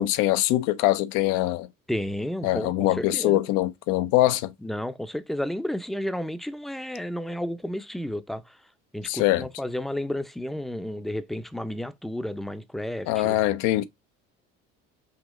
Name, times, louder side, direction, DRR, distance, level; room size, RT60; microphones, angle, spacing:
voice 1, 0.0-1.7 2.4-4.5 9.1-9.4 13.1-13.8, left 15 dB, 85° left, 0.6 m, -23 dB
voice 2, 1.9-3.5 4.6-8.6 8.9-13.4, left 1 dB, ahead, 0.4 m, -32 dB
5.1 x 2.9 x 3.6 m
cardioid pair, 95°, 30 cm